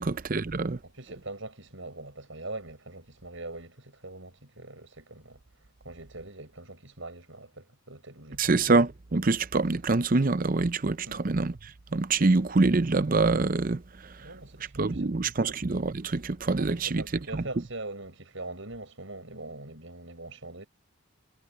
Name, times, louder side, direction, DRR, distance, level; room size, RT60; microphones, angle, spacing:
voice 1, 0.0-0.8 8.4-11.5 11.9-13.8 14.8-17.0 17.3-17.4, right 3 dB, 40° right, 0.6 m, -25 dB
voice 2, 0.8-5.4 5.8-8.5 11.1-11.3 14.2-15.1 15.4-15.6 16.5-20.7, right 2 dB, 65° right, 7.3 m, -42 dB
head